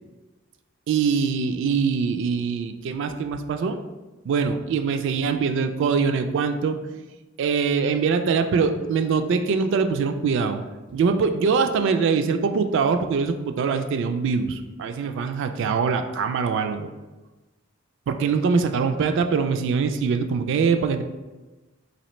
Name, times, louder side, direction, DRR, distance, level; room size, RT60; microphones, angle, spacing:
voice 1, 0.9-3.8 4.3-7.0 7.4-10.6 10.9-16.9 18.1-21.0, right 5 dB, 65° right, 7 dB, 0.3 m, -23 dB
4.1 x 2.7 x 3.0 m, 1.2 s
head